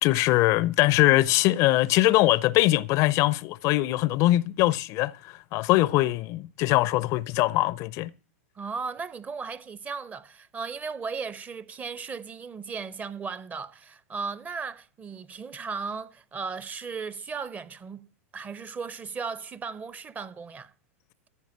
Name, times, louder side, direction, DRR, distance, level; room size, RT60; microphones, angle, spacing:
voice 1, 0.0-8.1, left 17 dB, 40° left, 0.5 m, -22 dB
voice 2, 8.6-18.1 18.3-20.7, right 5 dB, 20° right, 0.6 m, -36 dB
14.0 x 5.5 x 7.4 m
hypercardioid pair, 105°, 8 cm